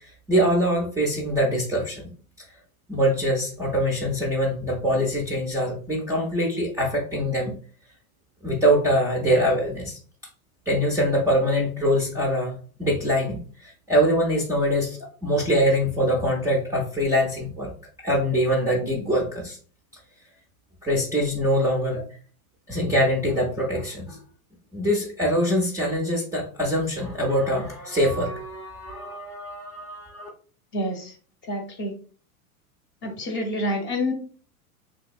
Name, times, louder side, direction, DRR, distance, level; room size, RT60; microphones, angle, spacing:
voice 1, 0.3-2.0 2.9-7.5 8.4-10.0 10.7-17.7 18.0-19.6 20.8-22.0 22.7-24.2 24.7-30.3, equal, 5° right, -4 dB, 0.4 m, -23 dB
voice 2, 30.7-31.1 31.5-31.9 33.0-34.1, left 1 dB, 25° left, 4 dB, 0.7 m, -27 dB
3.1 x 2.8 x 2.3 m, 0.42 s
hypercardioid pair, 95°, 44 cm